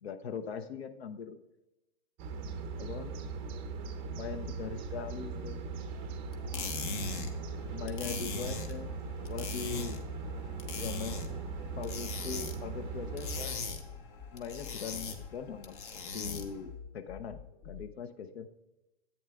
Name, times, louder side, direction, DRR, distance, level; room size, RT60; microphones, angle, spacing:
voice 1, 0.0-1.4 2.8-3.2 4.1-5.7 7.7-10.0 10.7-11.4 11.8-13.6 14.3-15.8 16.1-18.5, left 7 dB, 85° left, 9 dB, 0.7 m, -41 dB
sound 1, 2.2-13.5, right 4 dB, 20° right, 0.5 m, -39 dB
sound 2, 4.2-6.1 6.4-12.9 13.2-15.9 16.2-17.9, left 6 dB, 30° left, 0.6 m, -49 dB
sound 3, 6.3-16.7, left 4 dB, 55° left, 1.2 m, -40 dB
11.0 x 8.6 x 2.3 m, 0.95 s
hypercardioid pair, 145°, 31 cm